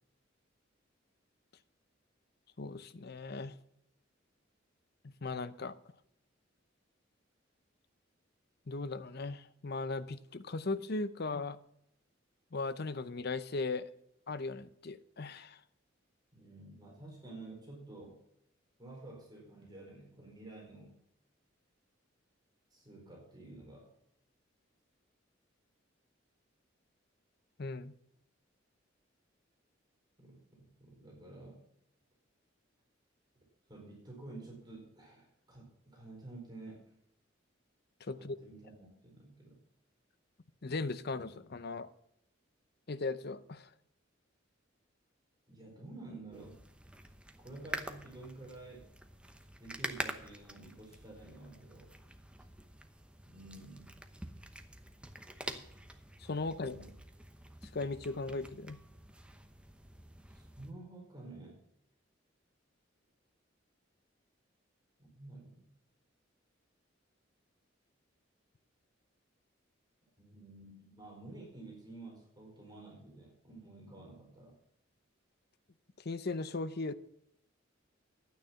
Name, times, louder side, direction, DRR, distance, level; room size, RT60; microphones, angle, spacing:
voice 1, 2.6-3.6 5.0-5.8 8.7-11.6 12.5-13.9 14.3-15.6 27.6-27.9 38.0-38.4 40.6-41.9 42.9-43.7 56.2-56.7 57.7-58.8 76.0-76.9, left 3 dB, 55° left, 14 dB, 0.7 m, -38 dB
voice 2, 16.3-18.2 18.8-21.0 22.7-23.9 30.2-31.6 33.7-36.8 38.2-39.5 45.5-46.6 47.4-48.9 49.6-51.9 53.3-54.0 56.6-56.9 60.3-61.6 65.0-65.7 70.2-74.6, right 2 dB, 20° right, -2 dB, 4.5 m, -51 dB
sound 1, 46.3-60.7, right 1 dB, 5° right, 0.9 m, -47 dB
12.0 x 9.4 x 5.7 m, 0.74 s
head